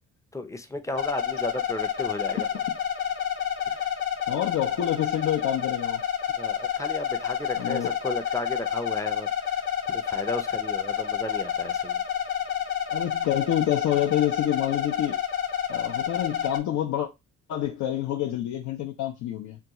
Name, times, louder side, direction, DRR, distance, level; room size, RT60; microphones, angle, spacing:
voice 1, 0.3-2.5 3.7-3.9 6.4-12.0, left 1 dB, 10° left, 0.5 m, -34 dB
sound 1, 0.9-16.6, left 9 dB, 40° left, 0.8 m, -29 dB
voice 2, 4.3-6.0 7.6-7.9 12.9-15.2 15.7-17.1 17.5-19.6, left 11 dB, 70° left, 0.6 m, -27 dB
3.6 x 2.3 x 2.9 m
cardioid pair, 90°, 30 cm